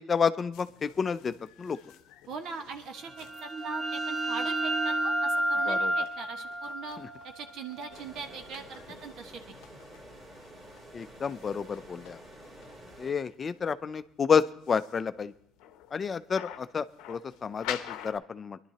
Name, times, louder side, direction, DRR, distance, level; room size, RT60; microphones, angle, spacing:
voice 1, 0.0-1.3 1.6-1.8 5.7-5.9 10.9-12.2 13.0-15.3 15.9-18.6, left 6 dB, 40° left, 13 dB, 0.4 m, -30 dB
sound 1, 0.5-18.2, left 11 dB, 80° left, 0.7 m, -48 dB
voice 2, 2.3-7.0 7.2-9.4, right 4 dB, 65° right, 6 dB, 1.3 m, -41 dB
sound 2, 3.0-8.5, right 1 dB, 5° right, 0.7 m, -31 dB
sound 3, 7.9-13.1, right 1 dB, 35° right, 3.1 m, -50 dB
21.0 x 11.5 x 2.9 m, 0.74 s
supercardioid pair, 75°, 0 cm